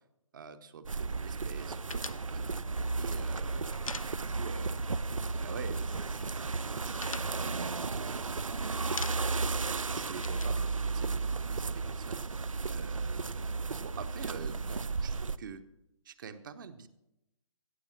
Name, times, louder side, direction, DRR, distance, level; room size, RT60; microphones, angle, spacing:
voice 1, 0.3-2.4 3.0-5.1 5.3-8.2 8.6-9.3 9.9-12.2 12.7-15.6 16.0-16.9, right 6 dB, 40° right, 9 dB, 0.9 m, -47 dB
sound 1, 0.8-15.4, right 4 dB, 80° right, 0.5 m, -34 dB
Vehicle, 1.8-11.0, left 3 dB, 5° left, 0.7 m, -61 dB
sound 2, 1.9-4.7 4.9-5.1 5.4-6.1 6.4-8.4 8.8-9.5 9.8-11.6, left 4 dB, 85° left, 0.4 m, -45 dB
16.0 x 7.1 x 6.0 m, 0.88 s
figure-of-eight pair, 135°, 17 cm